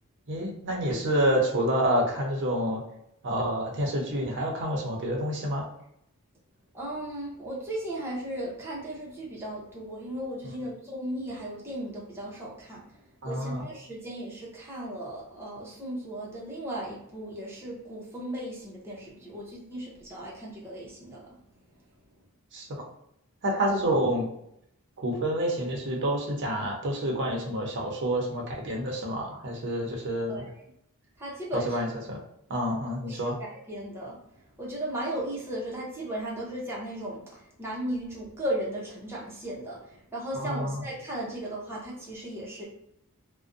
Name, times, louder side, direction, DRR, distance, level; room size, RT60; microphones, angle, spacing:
voice 1, 0.3-2.8 3.2-5.7 10.4-10.5 13.2-13.7 22.5-22.7 23.4-24.2 25.0-30.4 31.7-32.2 32.5-33.3 40.3-40.8, right 1 dB, 55° right, 0 dB, 0.6 m, -28 dB
voice 2, 6.7-12.8 13.2-21.3 30.2-30.5 31.2-31.8 33.1-34.2 34.6-42.7, right 1 dB, 10° right, -5 dB, 0.6 m, -36 dB
2.5 x 2.1 x 2.4 m, 0.75 s
head